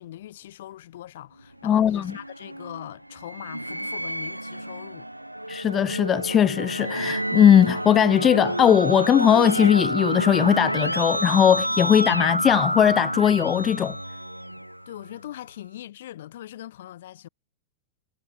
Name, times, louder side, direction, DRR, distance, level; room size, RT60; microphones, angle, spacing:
voice 1, 0.0-5.1 14.9-17.3, left 13 dB, 60° left, 2.6 m, -41 dB
sound 1, 1.4-15.1, right 1 dB, 85° right, 0.4 m, -31 dB
voice 2, 1.6-2.0 5.5-14.0, left 9 dB, 25° left, 0.5 m, -19 dB
Keyboard (musical), 8.2-14.8, equal, 90° left, 0.5 m, -29 dB
figure-of-eight pair, 90°, 0 cm